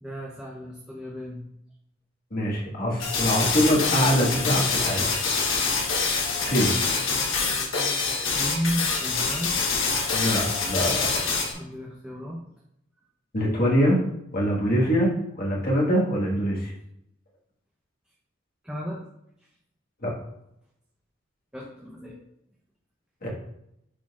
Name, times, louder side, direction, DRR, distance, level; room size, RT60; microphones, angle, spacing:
voice 1, 0.0-1.4 6.5-9.5 11.5-12.4 18.6-19.0 21.5-22.2, equal, 5° right, -4 dB, 0.7 m, -34 dB
voice 2, 2.3-5.1 6.4-6.7 10.1-11.2 11.5-11.6 13.3-14.0 14.3-16.7 20.0-20.1 23.2-23.3, equal, 45° left, -3 dB, 1.6 m, -24 dB
sound 1, 3.0-11.5, left 4 dB, 65° left, 1.2 m, -25 dB
10.5 x 4.0 x 2.4 m, 0.78 s
head